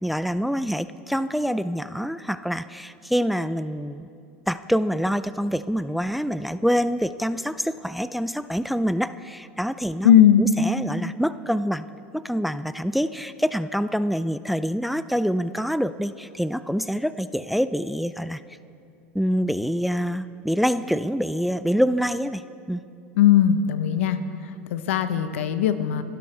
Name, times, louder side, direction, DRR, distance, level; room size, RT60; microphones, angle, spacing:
voice 1, 0.0-4.1 4.5-10.1 10.4-11.9 12.1-18.4 19.1-22.4 22.7-22.8, equal, ahead, 14 dB, 0.4 m, -26 dB
voice 2, 10.0-10.4 23.2-24.2 24.7-26.0, left 10 dB, 80° left, 11 dB, 0.9 m, -18 dB
27.0 x 12.0 x 3.3 m, 2.5 s
hypercardioid pair, 95°, 7 cm